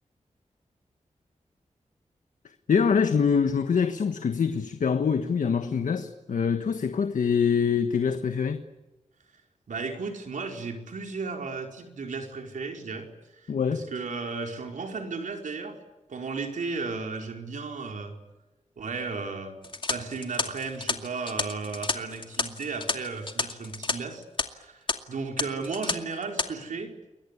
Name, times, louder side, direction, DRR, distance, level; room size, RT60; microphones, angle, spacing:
voice 1, 2.7-8.6 13.5-13.9, left 6 dB, 85° left, 1.4 m, -24 dB
voice 2, 9.7-13.1 13.3-15.7 16.1-18.1 18.8-19.6 19.9-26.9, right 4 dB, 90° right, 4.9 m, -34 dB
sound 1, 19.6-23.9 24.2-24.4 24.9-25.0 25.4-25.9 26.2-26.5, left 3 dB, 40° left, 2.4 m, -30 dB
29.5 x 22.0 x 8.5 m
wide cardioid pair, 70°, 13 cm